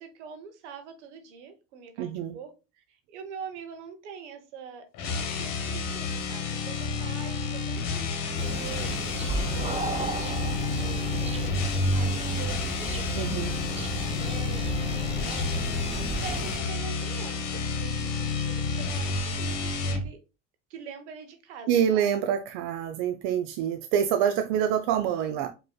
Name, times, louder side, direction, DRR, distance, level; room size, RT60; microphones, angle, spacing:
voice 1, 0.0-9.1 9.5-15.9 16.2-20.2 20.7-22.1, right 6 dB, 85° right, 0.9 m, -44 dB
voice 2, 2.0-2.4 13.2-13.5 21.7-25.5, right 9 dB, 70° right, 0.6 m, -26 dB
sound 1, 4.9-20.1, left 4 dB, 65° left, 1.0 m, -30 dB
sound 2, 8.4-16.6, right 3 dB, 20° right, 0.7 m, -34 dB
5.0 x 3.0 x 2.3 m
hypercardioid pair, 80°, 34 cm